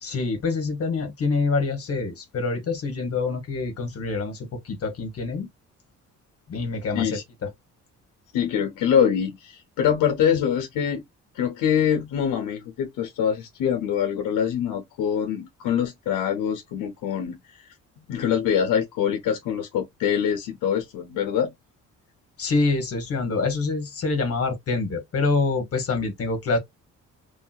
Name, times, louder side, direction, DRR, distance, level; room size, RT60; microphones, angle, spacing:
voice 1, 0.0-5.5 6.5-7.5 22.4-26.6, left 3 dB, 50° left, 1.1 m, -26 dB
voice 2, 8.3-11.0 11.3-17.7 18.1-21.5, left 8 dB, 85° left, 0.7 m, -24 dB
3.1 x 2.7 x 2.2 m
cardioid pair, 90°, 30 cm